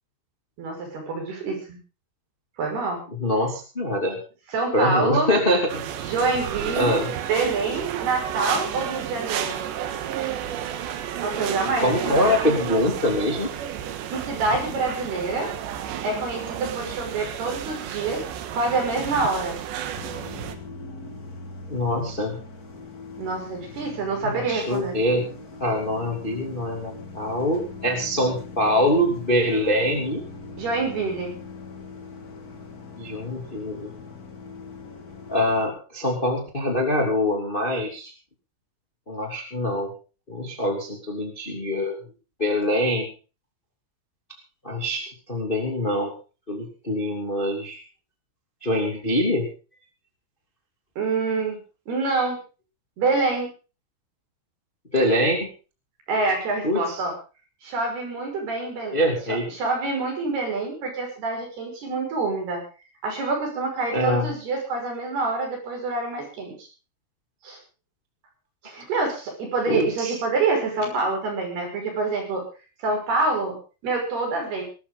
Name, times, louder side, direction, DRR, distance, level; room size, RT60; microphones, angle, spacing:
voice 1, 0.6-1.8 2.6-3.0 4.5-5.3 6.0-7.0 7.3-9.6 11.2-12.3 14.1-15.5 16.0-18.2 18.5-19.6 23.2-25.0 30.6-31.4 51.0-51.6 51.9-52.4 53.0-53.5 56.1-57.1 57.6-59.0 59.3-62.6 63.0-66.7 67.4-67.6 68.6-72.4 72.8-73.6 73.8-74.6, right 3 dB, 55° right, 2 dB, 7.7 m, -26 dB
voice 2, 3.1-4.2 4.7-5.8 6.7-7.1 11.8-13.5 21.7-22.4 24.2-25.3 25.6-30.2 33.0-33.9 35.3-38.1 39.1-39.9 40.3-42.0 42.4-43.1 44.6-45.0 45.3-46.1 46.5-47.8 48.6-49.4 54.9-55.4 56.6-57.0 58.9-59.5 63.9-64.3 69.7-70.1, left 1 dB, 15° left, 2 dB, 2.0 m, -24 dB
sound 1, 5.7-20.6, right 10 dB, 70° right, 3.5 m, -32 dB
sound 2, 19.9-35.7, left 4 dB, 70° left, 0.8 m, -41 dB
20.0 x 13.0 x 3.9 m, 0.34 s
omnidirectional pair, 5.4 m